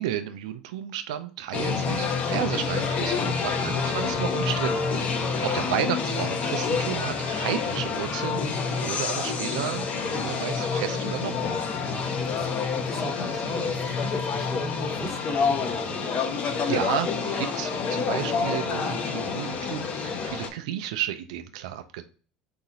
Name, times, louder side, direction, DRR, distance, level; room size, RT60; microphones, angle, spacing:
voice 1, 0.0-4.9 5.4-11.4 16.7-22.0, right 11 dB, 80° right, 0.4 m, -32 dB
sound 1, 1.5-20.5, left 5 dB, 45° left, 0.8 m, -28 dB
voice 2, 11.7-16.1, right 1 dB, 5° right, 1.1 m, -39 dB
4.1 x 2.8 x 3.7 m
hypercardioid pair, 80°, 3 cm